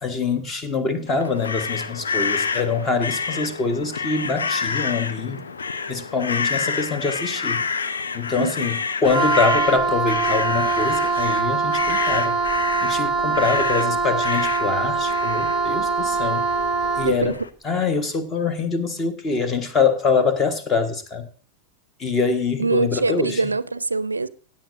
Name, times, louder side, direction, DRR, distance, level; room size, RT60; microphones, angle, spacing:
voice 1, 0.0-5.5 5.9-7.7 8.1-12.3 12.8-16.5 16.9-17.4 17.6-21.3 22.0-23.4, left 4 dB, 25° left, 1.4 m, -24 dB
sound 1, 1.1-17.5, left 5 dB, 70° left, 0.8 m, -29 dB
Wind instrument woodwind instrument, 9.1-17.2, right 4 dB, 5° right, 1.3 m, -23 dB
voice 2, 17.0-17.4 22.6-24.3, right 3 dB, 80° right, 0.4 m, -23 dB
16.5 x 8.7 x 2.7 m
figure-of-eight pair, 90°, 0 cm